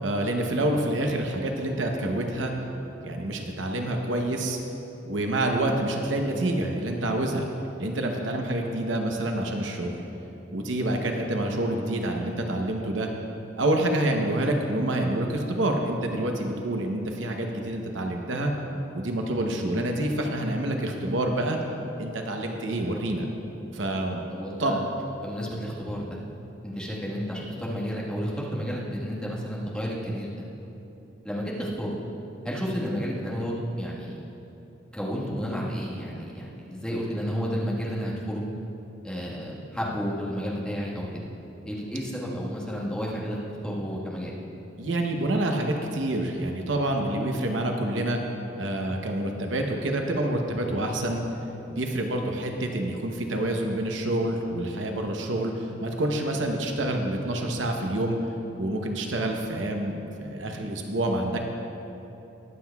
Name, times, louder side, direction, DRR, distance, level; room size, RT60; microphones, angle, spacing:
voice 1, 0.0-2.5 3.0-4.6 5.0-7.5 7.8-10.0 10.5-13.1 13.6-18.5 18.9-21.6 22.0-23.3 23.7-24.2 24.6-24.8 44.8-48.2 48.5-51.2 51.7-58.2 58.6-61.4, right 1 dB, 75° right, 2 dB, 0.9 m, -27 dB
voice 2, 24.3-24.8 25.2-26.2 26.6-30.4 31.2-31.9 32.4-34.2 34.9-38.4 39.0-41.2 41.6-43.4 43.6-44.3, equal, 5° left, -6 dB, 1.5 m, -31 dB
21.0 x 7.6 x 2.3 m, 3.0 s
head